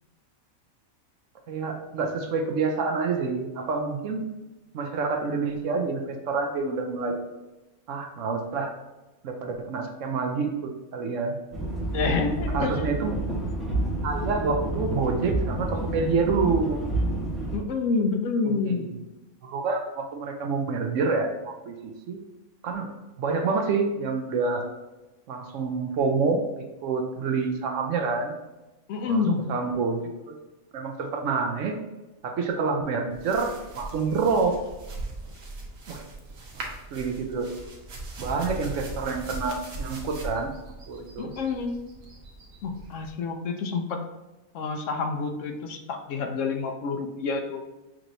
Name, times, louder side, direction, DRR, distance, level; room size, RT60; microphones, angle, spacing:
voice 1, 1.5-4.3 4.7-7.2 7.9-8.7 9.2-11.4 12.5-13.1 14.0-16.8 18.5-18.9 19.4-22.2 22.6-22.9 23.2-24.7 25.3-28.3 29.1-29.2 29.5-30.0 30.3-30.4 30.7-31.8 32.2-34.6 35.9-36.1 36.5-37.5 38.2-40.5 40.9-41.3, right 4 dB, 70° right, 4 dB, 0.9 m, -27 dB
sound 1, 11.5-17.6, right 1 dB, ahead, 0.9 m, -29 dB
voice 2, 11.9-13.0 17.5-18.9 28.9-29.4 41.2-41.8 42.6-44.0 44.5-47.6, left 4 dB, 70° left, 5 dB, 0.9 m, -28 dB
sound 2, 33.1-43.1, right 2 dB, 85° right, 1.3 m, -40 dB
6.0 x 3.0 x 2.6 m, 1.1 s
omnidirectional pair, 1.4 m